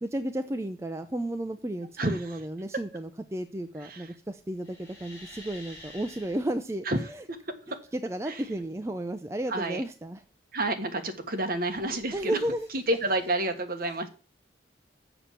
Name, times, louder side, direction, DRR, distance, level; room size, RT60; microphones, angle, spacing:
voice 1, 0.0-7.2 7.9-10.2 12.1-12.7, right 1 dB, 15° right, 7 dB, 0.5 m, -33 dB
sound 1, 4.6-6.5 11.3-13.3, left 1 dB, 15° left, 3.9 m, -50 dB
voice 2, 9.5-9.8 10.5-12.4 12.7-14.1, right 1 dB, 55° right, 6 dB, 1.4 m, -29 dB
7.0 x 5.7 x 7.3 m, 0.35 s
head